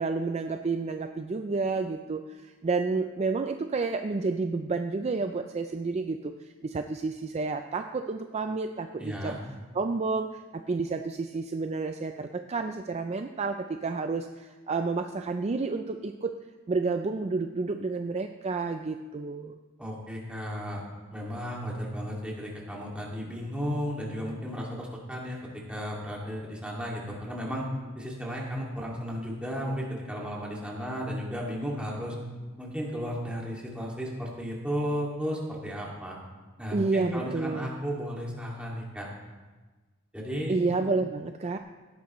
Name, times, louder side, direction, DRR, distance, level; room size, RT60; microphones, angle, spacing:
voice 1, 0.0-9.4 9.7-10.4 10.7-16.3 16.7-19.6 36.7-37.7 40.5-41.6, right 3 dB, 30° right, 7 dB, 0.4 m, -30 dB
voice 2, 9.0-9.4 19.8-20.8 21.1-27.7 27.9-32.2 32.6-36.2 36.6-39.1 40.1-40.5, equal, 5° right, -4 dB, 2.2 m, -34 dB
17.0 x 10.5 x 3.1 m, 1.3 s
head